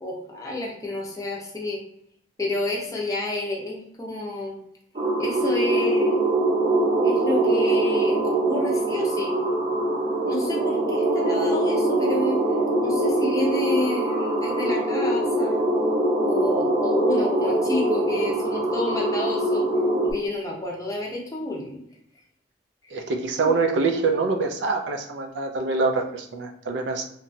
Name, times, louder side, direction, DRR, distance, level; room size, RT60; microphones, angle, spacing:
voice 1, 0.0-1.8 2.4-4.6 5.2-6.1 7.0-9.3 10.3-12.4 12.8-15.7 16.2-19.6 20.0-21.8 23.4-23.5, left 2 dB, 20° left, -2 dB, 0.5 m, -30 dB
sound 1, 4.9-20.1, right 1 dB, 35° right, 0.6 m, -23 dB
voice 2, 22.9-27.1, right 3 dB, 70° right, 5 dB, 0.4 m, -25 dB
2.8 x 2.2 x 2.6 m, 0.72 s
head